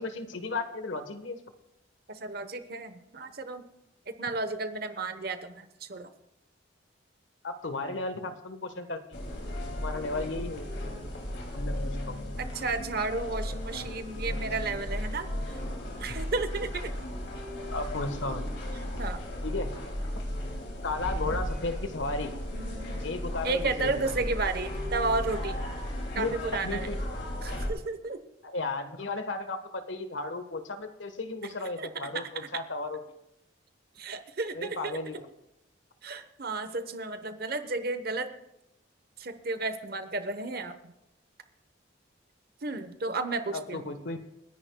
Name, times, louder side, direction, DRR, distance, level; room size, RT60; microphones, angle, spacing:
voice 1, 0.0-1.4 7.4-9.4 9.8-10.8 11.5-12.1 13.7-13.9 17.7-18.5 19.4-19.7 20.8-22.3 23.0-24.1 26.1-27.0 28.4-33.0 34.5-35.3 43.5-44.2, left 3 dB, 80° left, 8 dB, 1.3 m, -34 dB
voice 2, 2.1-3.6 4.1-6.1 12.4-15.6 16.0-16.9 19.0-19.2 23.4-25.7 26.1-26.9 27.4-28.2 31.8-31.9 32.1-32.6 34.0-35.0 36.0-38.3 39.2-40.9 42.6-43.9, right 3 dB, 50° right, 10 dB, 1.0 m, -33 dB
sound 1, 9.1-27.7, left 1 dB, 65° left, 2.7 m, -35 dB
29.5 x 10.5 x 2.3 m, 0.86 s
head